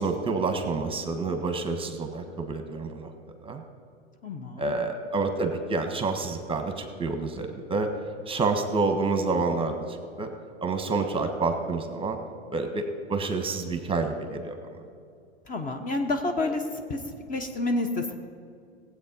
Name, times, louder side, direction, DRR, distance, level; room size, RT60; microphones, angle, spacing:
voice 1, 0.0-3.1 3.4-3.6 4.6-7.9 8.3-10.3 10.6-12.2 12.5-14.6, right 3 dB, 15° right, 6 dB, 1.3 m, -28 dB
voice 2, 4.2-4.7 15.5-16.6 16.9-17.0 17.3-18.1, left 2 dB, 25° left, 5 dB, 1.0 m, -29 dB
17.5 x 8.2 x 5.4 m, 2.4 s
hypercardioid pair, 90°, 32 cm